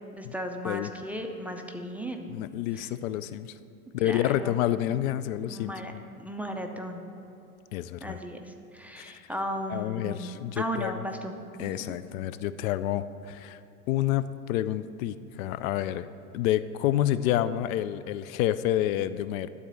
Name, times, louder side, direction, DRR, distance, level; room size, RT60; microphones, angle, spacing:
voice 1, 0.2-2.3 2.7-2.9 4.0-4.6 5.5-5.9 6.2-7.0 8.0-11.9, equal, 5° right, 3 dB, 0.5 m, -36 dB
voice 2, 2.3-3.6 3.9-6.0 7.7-8.2 9.0-9.2 9.7-11.0 11.6-13.6 13.9-16.1 16.3-19.5, left 12 dB, 65° left, 14 dB, 0.5 m, -29 dB
12.0 x 4.2 x 6.9 m, 2.9 s
hypercardioid pair, 95°, 45 cm